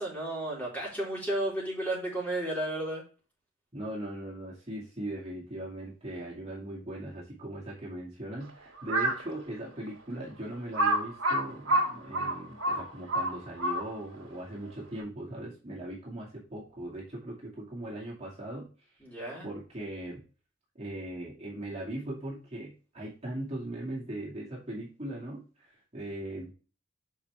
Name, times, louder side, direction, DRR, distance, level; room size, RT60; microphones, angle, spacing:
voice 1, 0.0-3.0 19.0-19.5, right 1 dB, 10° left, -5 dB, 3.9 m, -33 dB
voice 2, 3.7-18.9 19.4-20.2 20.7-26.5, right 1 dB, 30° right, -5 dB, 2.4 m, -39 dB
Crow, 8.8-9.3 9.9-10.0 10.7-14.1, right 1 dB, 90° right, 2.1 m, -28 dB
6.6 x 5.7 x 3.3 m, 0.35 s
head